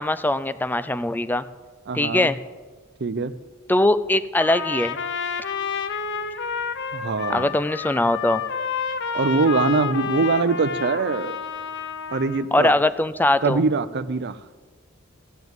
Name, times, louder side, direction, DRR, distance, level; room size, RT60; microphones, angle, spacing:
voice 1, 0.0-1.4 1.9-2.4 3.7-5.0 7.3-8.4 12.5-13.6, left 1 dB, 10° left, 14 dB, 0.4 m, -21 dB
voice 2, 1.9-2.3 3.0-3.4 6.9-7.6 9.1-11.4 12.1-12.7 13.4-14.4, right 4 dB, 55° right, 12 dB, 0.6 m, -23 dB
Trumpet, 4.4-12.5, left 6 dB, 60° left, 0.7 m, -29 dB
16.0 x 7.2 x 8.0 m, 1.3 s
head